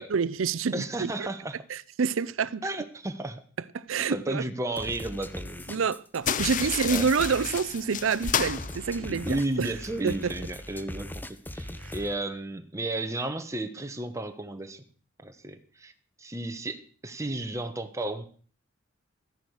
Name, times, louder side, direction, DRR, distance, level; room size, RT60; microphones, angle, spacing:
voice 1, 0.1-1.3 1.7-2.7 3.7-4.4 5.7-9.7 10.0-10.3 11.8-11.9, right 5 dB, 85° right, 0.5 m, -28 dB
voice 2, 0.7-1.6 2.6-3.4 4.1-5.7 6.9-7.1 9.0-14.8 15.2-15.9 16.2-18.2, right 2 dB, 15° right, 1.2 m, -33 dB
sound 1, 4.8-12.1, left 1 dB, 10° left, 0.8 m, -40 dB
sound 2, 6.2-9.6, left 8 dB, 40° left, 0.6 m, -32 dB
13.5 x 10.5 x 6.4 m
head